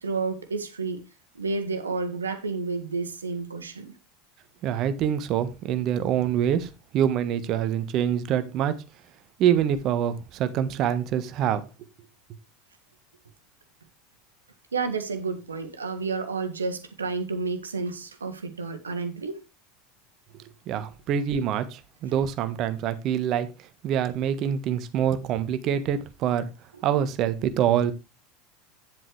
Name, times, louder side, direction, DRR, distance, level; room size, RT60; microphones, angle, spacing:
voice 1, 0.0-1.0 1.3-3.9 14.7-19.4, right 4 dB, 85° right, 1.6 m, -30 dB
voice 2, 4.6-8.8 9.4-11.7 20.7-23.5 23.8-26.5 26.8-27.9, right 9 dB, 50° right, 1.4 m, -25 dB
10.0 x 7.7 x 3.3 m
hypercardioid pair, 80°, 0 cm